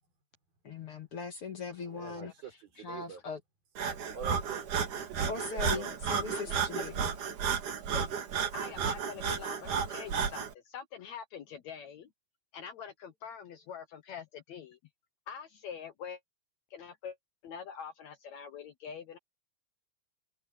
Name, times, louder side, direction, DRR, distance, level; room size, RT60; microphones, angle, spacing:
voice 1, 0.6-3.4 5.3-7.1, left 5 dB, 50° left, 2.0 m, -40 dB
voice 2, 1.9-2.5 2.8-3.2 4.1-6.0, right 6 dB, 85° right, 7.0 m, -44 dB
Breathing, 3.8-10.5, right 6 dB, 60° right, 3.7 m, -33 dB
voice 3, 6.1-6.6 7.0-7.1 7.9-8.1 8.5-12.1 12.5-14.8 15.3-16.2 16.7-17.2 17.4-19.2, left 7 dB, 70° left, 1.8 m, -44 dB
omnidirectional pair, 4.1 m